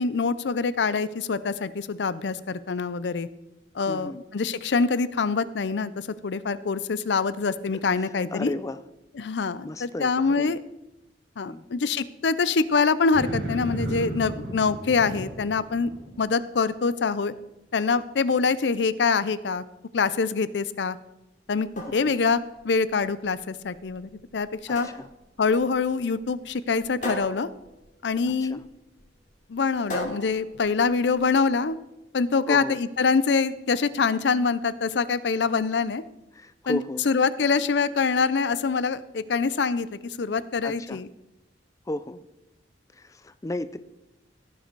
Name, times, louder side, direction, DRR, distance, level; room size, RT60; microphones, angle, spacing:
voice 1, 0.0-3.3 3.7-8.5 9.2-10.6 11.4-15.9 16.2-17.3 17.7-19.6 19.9-21.0 21.5-22.4 22.6-24.9 25.4-27.5 28.0-28.6 29.5-31.8 32.1-36.0 36.7-36.8 37.1-41.1, left 4 dB, 70° left, 16 dB, 0.5 m, -25 dB
voice 2, 3.9-4.2 8.3-8.8 9.6-10.6 11.4-11.7 21.9-22.1 24.7-25.1 28.2-28.6 32.5-32.8 36.3-37.0 40.6-41.0 41.9-42.2 42.9-43.8, left 1 dB, 20° left, 13 dB, 0.4 m, -34 dB
sound 1, 13.1-16.2, right 1 dB, 65° right, 3.0 m, -33 dB
sound 2, 21.5-31.5, equal, 45° left, 2.9 m, -40 dB
16.5 x 6.8 x 4.6 m, 0.93 s
head